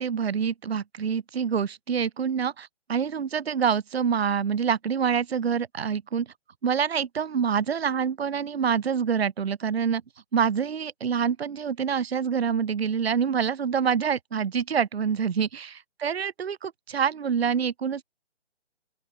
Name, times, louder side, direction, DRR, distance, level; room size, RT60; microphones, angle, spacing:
voice 1, 0.0-6.3 6.6-10.0 10.3-18.0, right 7 dB, 60° right, 0.9 m, -26 dB
open air
hypercardioid pair, 175°, 36 cm